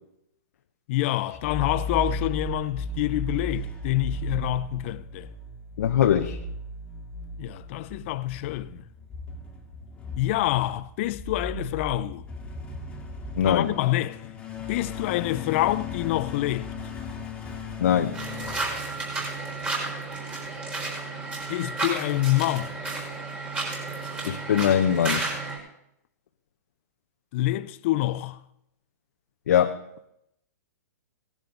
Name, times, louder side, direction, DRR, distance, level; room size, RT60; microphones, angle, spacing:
voice 1, 0.9-5.3 7.4-8.8 10.2-12.2 13.4-14.3 14.7-16.7 21.5-22.8 27.3-28.4, left 16 dB, 45° left, 0.6 m, -27 dB
sound 1, 1.3-19.5, left 1 dB, 10° left, 2.1 m, -36 dB
voice 2, 5.8-6.4 13.4-13.7 17.8-18.2 24.2-25.3 29.5-29.8, left 9 dB, 70° left, 0.9 m, -22 dB
sound 2, 18.1-25.6, right 3 dB, 15° right, 4.0 m, -32 dB
17.5 x 11.0 x 4.0 m
hypercardioid pair, 140°, 9 cm